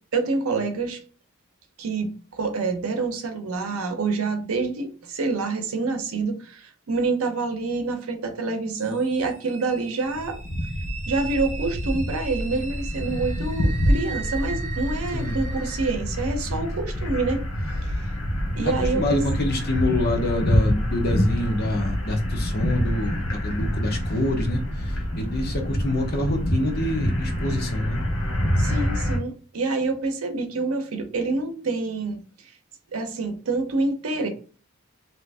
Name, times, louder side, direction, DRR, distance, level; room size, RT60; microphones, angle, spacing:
voice 1, 0.1-1.0 1.8-10.4 11.1-17.4 18.6-19.2 28.6-32.2 32.9-34.3, right 3 dB, 85° right, 5 dB, 0.7 m, -27 dB
sound 1, 8.8-15.9, right 6 dB, 35° right, 0.6 m, -39 dB
sound 2, 10.1-29.2, equal, 90° left, 1.1 m, -26 dB
voice 2, 18.6-28.0, left 1 dB, 50° left, 3 dB, 0.7 m, -26 dB
2.7 x 2.5 x 3.3 m, 0.39 s
head